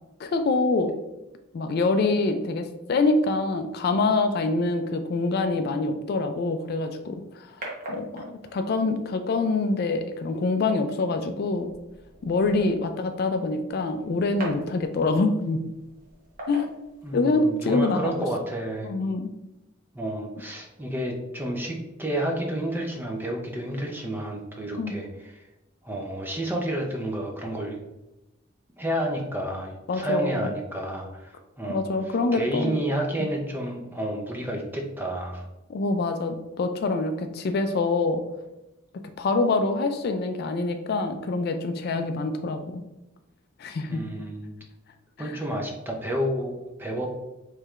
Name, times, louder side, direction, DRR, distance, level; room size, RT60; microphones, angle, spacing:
voice 1, 0.2-0.9 1.5-7.2 7.9-11.7 12.2-15.6 16.5-16.7 17.1-18.3 18.8-19.3 24.8-24.9 29.9-30.5 31.7-32.8 33.2-33.3 35.7-38.2 39.2-42.8 43.6-44.0 45.2-45.4, left 3 dB, 50° left, 8 dB, 0.3 m, -25 dB
sound 1, 6.6-17.6, right 1 dB, 45° right, 1.0 m, -44 dB
voice 2, 17.0-18.9 19.9-25.4 25.8-27.8 28.8-31.8 32.3-35.4 43.9-44.6 45.2-47.1, right 1 dB, 10° right, 1 dB, 0.5 m, -30 dB
4.5 x 3.2 x 2.4 m, 0.96 s
head